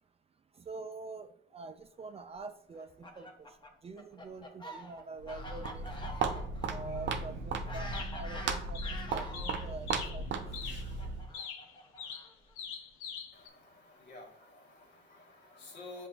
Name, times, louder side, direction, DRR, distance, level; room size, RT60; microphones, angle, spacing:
voice 1, 0.6-3.5 3.8-6.2 6.7-10.4, right 3 dB, 30° right, 8 dB, 0.4 m, -45 dB
Fowl, 2.7-9.7 10.5-12.5, left 1 dB, 20° left, 0.8 m, -47 dB
Walk footsteps, 5.2-11.3, right 4 dB, 60° right, 0.6 m, -36 dB
sound 1, 6.9-7.0 7.9-8.4 8.7-10.2 10.5-10.9 11.3-13.5, left 7 dB, 90° left, 0.6 m, -44 dB
voice 2, 13.3-16.1, left 2 dB, 60° left, -1 dB, 1.3 m, -51 dB
7.5 x 2.5 x 2.3 m, 0.70 s
cardioid pair, 90°, 21 cm